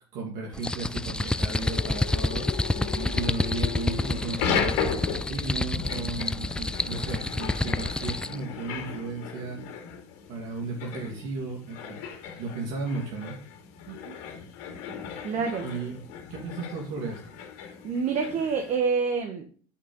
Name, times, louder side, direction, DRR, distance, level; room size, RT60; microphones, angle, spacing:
voice 1, 0.1-2.5 3.1-9.6 10.3-12.0 12.3-13.4 15.6-15.9 16.3-17.4, right 3 dB, 70° right, -1 dB, 2.4 m, -35 dB
sound 1, 0.5-8.4, left 2 dB, 5° left, 0.3 m, -29 dB
sound 2, 1.2-18.8, left 7 dB, 75° left, 2.1 m, -36 dB
voice 2, 2.8-3.1 13.9-14.1 15.2-15.7 17.6-19.4, right 5 dB, 55° right, 4 dB, 1.5 m, -28 dB
8.3 x 5.5 x 3.9 m, 0.42 s
supercardioid pair, 90°, 14 cm